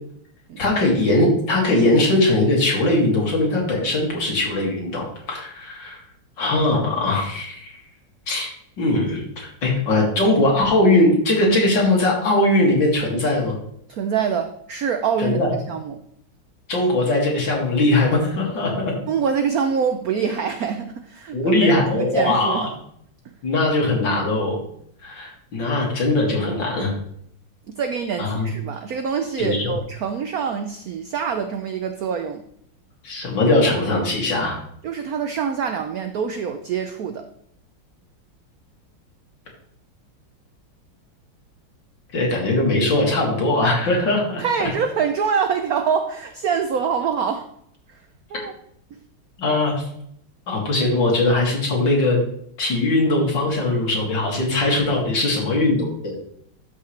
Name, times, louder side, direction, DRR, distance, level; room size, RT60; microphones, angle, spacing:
voice 1, 0.6-6.0 6.4-7.8 8.3-8.5 8.8-13.6 15.2-15.5 16.7-18.9 21.3-22.7 23.4-24.6 25.0-26.9 28.2-28.5 29.4-29.7 33.0-34.6 42.1-44.4 49.4-49.8 50.5-52.2 52.6-56.2, left 2 dB, 60° left, -2 dB, 3.0 m, -20 dB
voice 2, 13.9-15.4 15.7-16.0 19.1-22.7 27.7-32.4 34.8-37.3 44.4-47.5 47.9-48.0 48.3-48.5 48.9-49.0, right 6 dB, 80° right, 8 dB, 0.8 m, -25 dB
12.5 x 5.8 x 3.3 m, 0.69 s
omnidirectional pair, 2.3 m